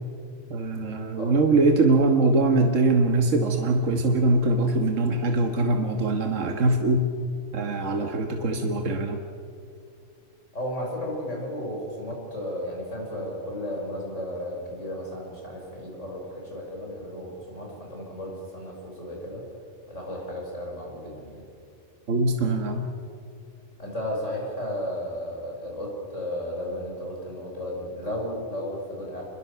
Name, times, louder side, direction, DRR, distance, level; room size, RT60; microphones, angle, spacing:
voice 1, 0.5-7.1 7.5-9.2 22.1-22.9, right 2 dB, 75° right, 4 dB, 1.7 m, -22 dB
voice 2, 10.5-19.4 19.9-21.4 23.8-29.2, left 1 dB, 70° left, -1 dB, 6.3 m, -34 dB
27.0 x 21.0 x 6.8 m, 2.5 s
omnidirectional pair, 1.3 m